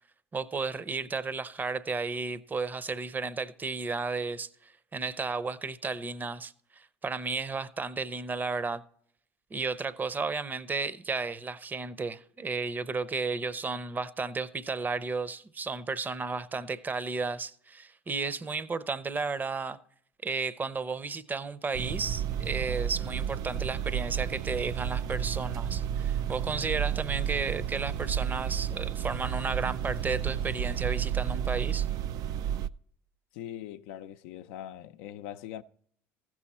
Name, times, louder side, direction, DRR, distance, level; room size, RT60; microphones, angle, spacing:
voice 1, 0.3-8.8 9.5-19.8 20.2-31.9, right 4 dB, 25° right, 0.7 m, -33 dB
sound 1, 21.7-32.7, right 9 dB, 55° right, 0.3 m, -32 dB
voice 2, 33.3-35.6, left 11 dB, 75° left, 0.5 m, -41 dB
15.0 x 6.2 x 4.3 m
hypercardioid pair, 80°, 7 cm